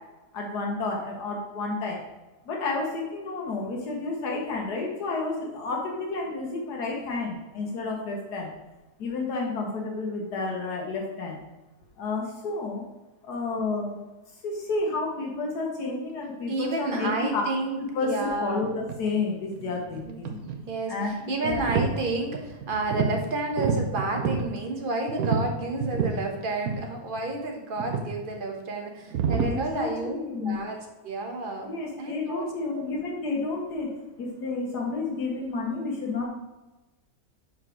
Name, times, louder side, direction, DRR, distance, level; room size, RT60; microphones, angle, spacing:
voice 1, 0.3-2.0 2.5-8.5 9.0-11.4 12.0-12.8 13.2-14.0 14.4-17.4 17.9-20.4 20.9-21.6 29.4-30.6 31.6-33.9 34.2-36.3, left 3 dB, 75° left, -1 dB, 1.6 m, -30 dB
voice 2, 16.5-18.6 20.0-20.2 20.7-31.7 32.0-32.8, right 2 dB, 35° right, 2 dB, 1.1 m, -31 dB
sound 1, 18.6-19.0 19.4-20.7 21.2-21.9 22.3-23.2 23.5-24.5 25.1-26.2 26.7-26.9 27.2-27.3 27.8-28.1 29.1-29.5, right 6 dB, 65° right, 1.2 m, -28 dB
5.5 x 4.7 x 6.1 m, 1.1 s
omnidirectional pair, 1.7 m